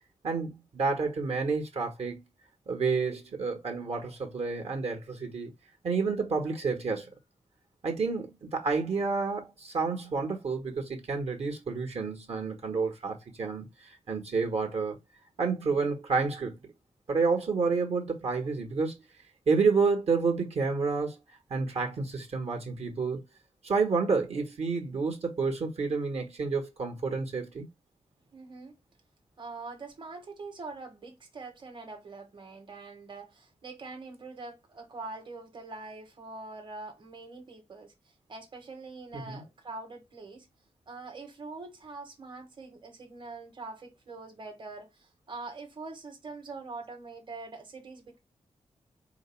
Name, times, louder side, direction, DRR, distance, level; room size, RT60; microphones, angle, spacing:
voice 1, 0.2-2.2 2.7-5.5 5.8-7.1 7.8-15.0 15.4-16.6 17.1-18.9 19.5-21.2 21.5-23.2 23.6-27.7 39.1-39.4, right 4 dB, 60° right, 1.2 m, -29 dB
voice 2, 28.3-28.8 29.4-40.5 40.9-48.2, right 3 dB, 40° right, 1.2 m, -44 dB
4.5 x 2.0 x 4.3 m
wide cardioid pair, 120°, 12 cm